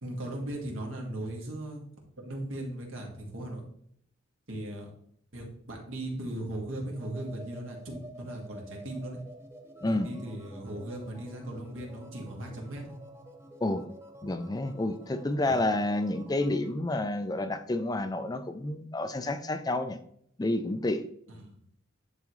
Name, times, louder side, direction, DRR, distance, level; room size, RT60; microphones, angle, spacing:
voice 1, 0.0-1.8 2.2-3.6 4.5-4.9 5.3-9.2 9.9-13.0 15.4-15.6 21.3-21.6, right 1 dB, 80° right, -1 dB, 2.1 m, -38 dB
sound 1, 6.9-16.7, right 1 dB, 15° right, 0.7 m, -50 dB
voice 2, 14.2-20.0 20.4-21.0, left 2 dB, 20° left, 9 dB, 0.4 m, -29 dB
10.5 x 3.6 x 3.2 m, 0.67 s
head